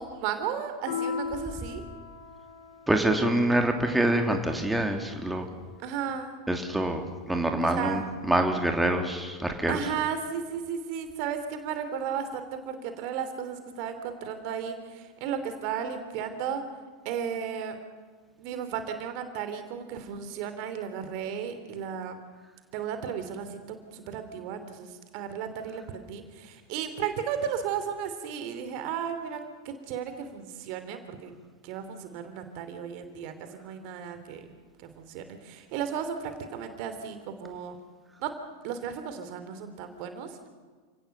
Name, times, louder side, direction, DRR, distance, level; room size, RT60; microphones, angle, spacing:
voice 1, 0.0-1.8 5.8-6.4 7.6-8.0 9.7-16.6 17.0-17.7 18.4-22.2 22.7-29.4 29.6-31.3 31.6-34.5 34.9-37.8 38.2-38.3 38.6-40.3, right 8 dB, 50° right, 9 dB, 3.0 m, -34 dB
Piano, 0.9-5.8, left 6 dB, 60° left, 2.9 m, -39 dB
voice 2, 2.9-5.5 6.5-9.8, right 1 dB, 5° right, 4 dB, 2.8 m, -26 dB
30.0 x 18.0 x 6.8 m, 1.5 s
figure-of-eight pair, 90°, 0 cm